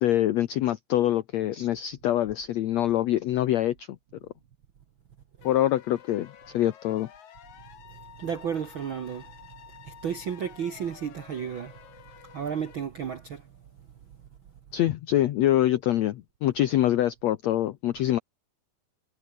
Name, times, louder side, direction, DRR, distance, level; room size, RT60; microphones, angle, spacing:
voice 1, 0.0-3.9 5.4-7.1 14.7-18.2, left 13 dB, 80° left, 1.5 m, -25 dB
sound 1, 5.4-12.8, left 9 dB, 55° left, 3.2 m, -51 dB
voice 2, 8.2-9.2 10.0-11.7 12.3-13.4, right 7 dB, 65° right, 1.2 m, -32 dB
omnidirectional pair, 4.2 m